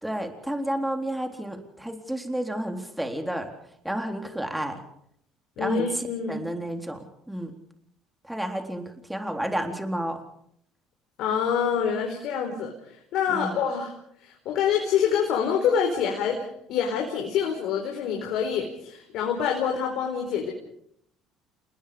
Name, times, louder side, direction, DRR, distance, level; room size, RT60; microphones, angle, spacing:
voice 1, 0.0-3.5 3.8-4.8 5.6-7.5 8.2-10.2 13.3-13.6, right 1 dB, 5° right, 5 dB, 3.8 m, -31 dB
voice 2, 5.6-6.4 11.2-12.7 13.1-13.9 14.2-20.5, left 7 dB, 70° left, 1 dB, 4.5 m, -26 dB
28.5 x 20.5 x 5.1 m, 0.71 s
hypercardioid pair, 70°, 0 cm